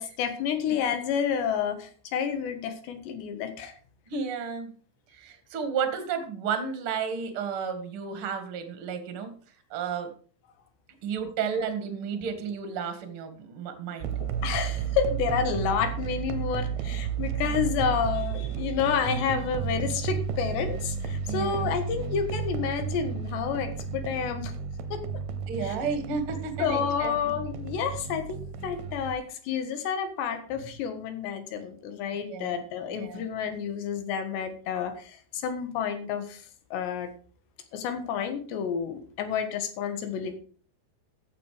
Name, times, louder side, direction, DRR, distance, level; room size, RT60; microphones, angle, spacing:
voice 1, 0.0-3.7 14.2-24.5 24.9-25.0 25.6-25.7 26.6-36.4 36.7-37.1 37.7-40.4, left 7 dB, 75° left, 8 dB, 3.7 m, -30 dB
voice 2, 4.1-4.7 5.1-9.3 9.7-10.1 11.0-14.2 17.4-17.6 21.2-21.7 25.5-27.3 32.3-32.6 32.9-33.2, right 6 dB, 45° right, 8 dB, 1.9 m, -32 dB
sound 1, 14.0-29.2, right 7 dB, 75° right, 2.5 m, -32 dB
14.5 x 7.6 x 5.0 m, 0.42 s
omnidirectional pair, 5.2 m